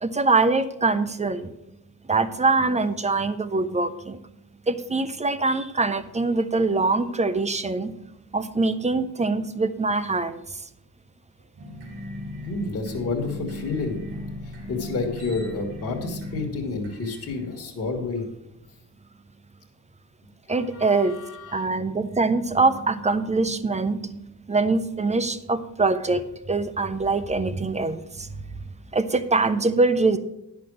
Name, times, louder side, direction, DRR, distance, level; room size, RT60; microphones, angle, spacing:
voice 1, 0.0-1.5 2.1-4.2 4.7-7.9 8.3-10.6 20.5-21.2 21.5-28.3 28.9-30.2, right 3 dB, 20° right, 12 dB, 0.4 m, -23 dB
sound 1, 11.6-18.1, left 1 dB, 85° right, 2.6 m, -37 dB
voice 2, 12.4-14.0 14.7-18.2 20.5-21.7, left 3 dB, 35° left, -1 dB, 1.7 m, -30 dB
10.5 x 6.0 x 6.2 m, 0.85 s
wide cardioid pair, 155°, 41 cm